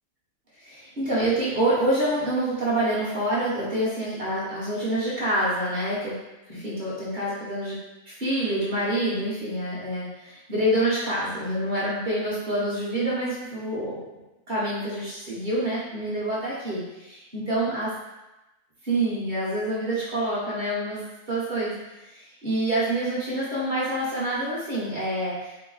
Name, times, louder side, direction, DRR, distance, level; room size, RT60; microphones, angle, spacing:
voice 1, 0.6-6.2 6.5-7.8 8.1-14.0 14.5-17.9 18.8-21.8 22.1-25.7, right 1 dB, 35° right, -8 dB, 1.1 m, -27 dB
3.8 x 2.1 x 3.9 m, 0.99 s
omnidirectional pair, 1.5 m